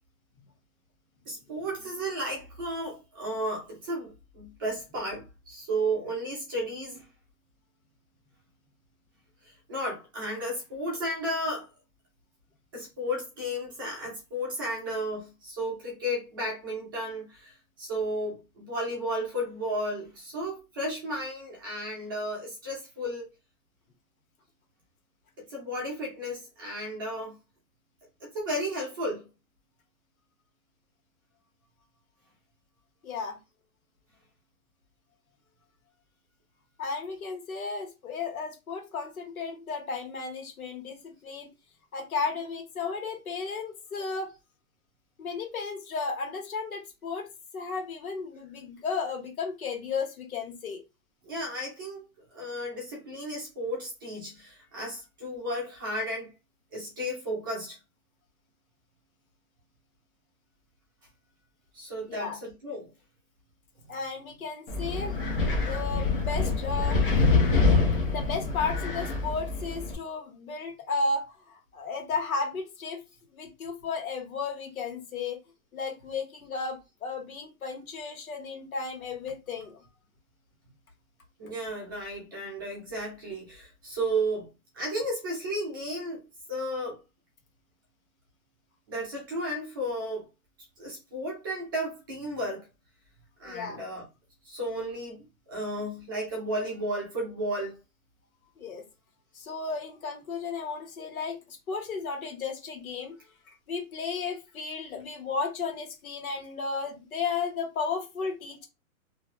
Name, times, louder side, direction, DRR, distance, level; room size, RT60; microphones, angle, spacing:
voice 1, 1.3-7.0 9.7-11.7 12.7-23.3 25.5-27.3 28.2-29.3 51.2-52.0 52.3-56.3 56.7-57.8 61.7-62.9 81.4-84.5 84.7-86.2 86.5-87.0 88.9-90.2 90.8-92.7 93.4-94.0 94.4-95.2 95.5-97.8, right 1 dB, 15° right, 0.6 m, -33 dB
voice 2, 33.0-33.4 36.8-41.5 41.9-44.3 45.2-47.3 47.5-50.8 62.1-62.4 63.9-65.2 65.6-67.0 68.1-73.0 73.3-75.4 75.7-79.8 93.4-93.8 98.6-98.8 99.3-103.2 103.7-108.7, left 4 dB, 75° left, 1.5 m, -34 dB
Wind, 64.7-69.9, left 4 dB, 40° left, 1.0 m, -25 dB
2.7 x 2.3 x 3.2 m
hypercardioid pair, 170°, 43 cm